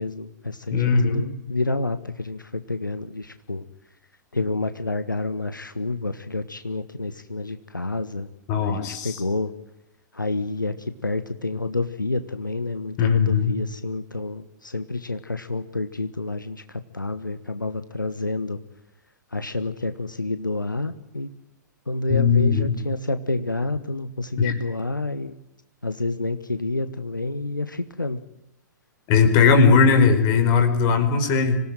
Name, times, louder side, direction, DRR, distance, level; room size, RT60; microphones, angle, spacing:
voice 1, 0.0-3.6 4.3-8.3 8.6-9.5 10.1-18.6 19.3-21.3 21.9-25.4 25.8-28.2, left 2 dB, 85° left, 10 dB, 1.3 m, -29 dB
voice 2, 0.7-1.2 8.5-9.2 13.0-13.5 22.1-22.7 24.4-24.5 29.1-31.6, left 5 dB, 35° left, 7 dB, 4.8 m, -18 dB
26.0 x 17.5 x 9.0 m, 0.87 s
figure-of-eight pair, 110°, 10 cm